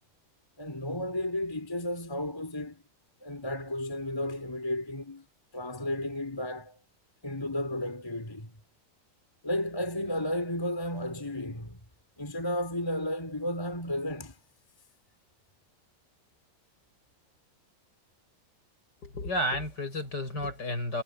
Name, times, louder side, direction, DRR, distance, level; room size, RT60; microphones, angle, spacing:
voice 1, 0.6-2.8 3.2-5.3 5.5-6.8 7.2-8.6 9.4-11.8 12.2-14.4, left 1 dB, 10° left, 4.2 m, -33 dB
voice 2, 19.0-21.0, left 1 dB, 50° left, 7.4 m, -32 dB
omnidirectional pair, 2.4 m